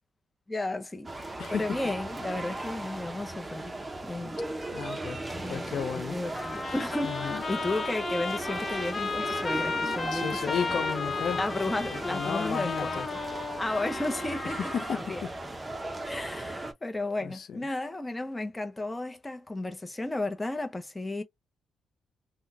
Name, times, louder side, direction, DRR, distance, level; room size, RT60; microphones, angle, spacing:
voice 1, 0.5-3.7 4.0-4.4 5.3-5.7 6.0-7.2 7.5-10.8 11.4-13.0 13.6-15.2 16.0-21.2, left 2 dB, 15° left, 0.7 m, -33 dB
sound 1, 1.0-16.7, right 2 dB, 20° right, 0.7 m, -37 dB
voice 2, 4.7-6.2 7.0-7.4 10.1-11.4 11.9-13.1 14.7-15.1 17.2-17.6, left 7 dB, 60° left, 0.5 m, -34 dB
Trumpet, 6.3-15.0, left 4 dB, 35° left, 1.0 m, -34 dB
3.7 x 2.2 x 2.6 m
cardioid pair, 90°, 0 cm